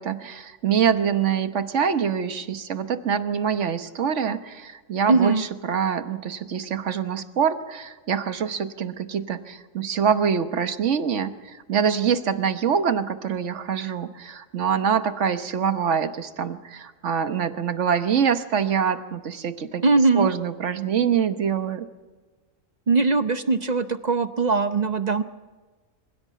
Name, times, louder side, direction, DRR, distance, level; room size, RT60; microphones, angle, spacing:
voice 1, 0.0-19.8 20.1-21.9, right 7 dB, 65° right, 10 dB, 1.3 m, -25 dB
voice 2, 5.1-5.4 19.8-20.3 22.9-25.2, right 4 dB, 40° right, 10 dB, 0.7 m, -20 dB
24.5 x 16.5 x 8.4 m, 1.3 s
omnidirectional pair, 1.4 m